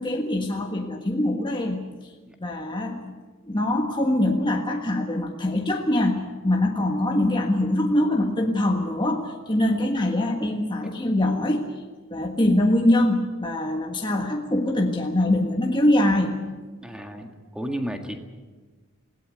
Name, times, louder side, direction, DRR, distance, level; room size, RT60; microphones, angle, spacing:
voice 1, 0.0-2.1 2.4-3.1 3.4-6.2 6.4-11.7 12.1-16.4, left 1 dB, 20° left, 1 dB, 1.5 m, -23 dB
voice 2, 16.8-18.1, equal, 5° right, 4 dB, 1.9 m, -33 dB
20.5 x 17.5 x 9.4 m, 1.3 s
head